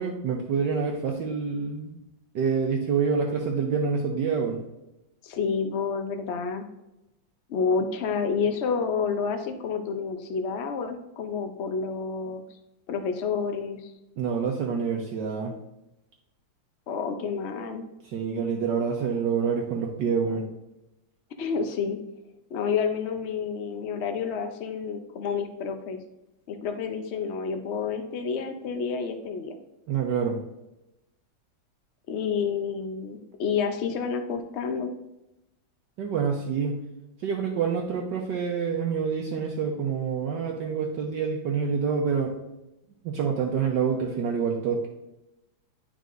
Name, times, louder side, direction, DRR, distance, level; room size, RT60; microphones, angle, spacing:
voice 1, 0.0-2.0 2.3-4.6 14.2-15.5 18.0-20.5 29.9-30.4 36.0-36.8 37.2-42.3 43.0-44.9, right 6 dB, 70° right, 0 dB, 1.4 m, -27 dB
voice 2, 5.2-6.6 7.5-12.4 12.9-13.8 16.9-17.8 21.4-22.0 22.5-26.0 26.5-29.5 32.1-34.9, left 5 dB, 80° left, 6 dB, 0.6 m, -29 dB
11.0 x 4.7 x 2.6 m, 0.92 s
omnidirectional pair, 2.1 m